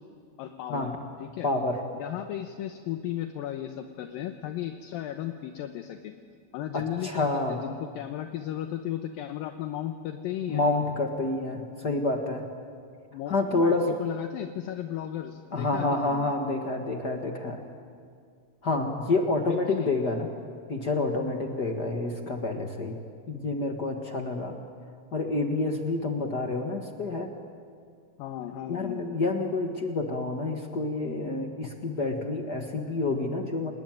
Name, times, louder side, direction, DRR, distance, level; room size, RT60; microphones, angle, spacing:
voice 1, 0.4-0.9 1.2-1.5 2.0-6.1 6.5-10.6 13.1-16.3 19.5-19.9 28.2-29.0, left 11 dB, 75° left, 6 dB, 2.6 m, -35 dB
voice 2, 1.4-1.8 6.7-7.6 10.5-12.4 13.3-13.9 15.5-17.6 18.6-20.3 20.7-23.0 23.3-24.6 25.1-27.3 28.7-33.7, left 2 dB, 50° left, 3 dB, 1.2 m, -28 dB
30.0 x 20.0 x 9.1 m, 2.2 s
omnidirectional pair, 4.4 m